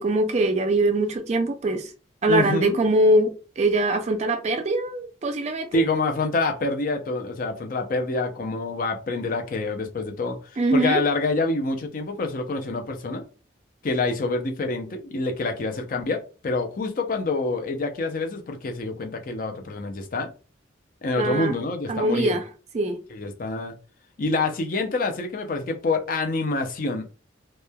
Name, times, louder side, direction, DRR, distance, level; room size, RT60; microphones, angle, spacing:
voice 1, 0.0-1.9 2.2-5.8 10.6-11.0 21.2-21.5 21.9-22.4 22.7-23.0, right 1 dB, 35° right, 0.3 m, -22 dB
voice 2, 2.3-2.8 5.7-10.4 10.7-13.2 13.8-20.3 21.0-22.4 23.1-23.7 24.2-27.0, left 3 dB, 45° left, 0.4 m, -26 dB
2.9 x 2.1 x 2.2 m
head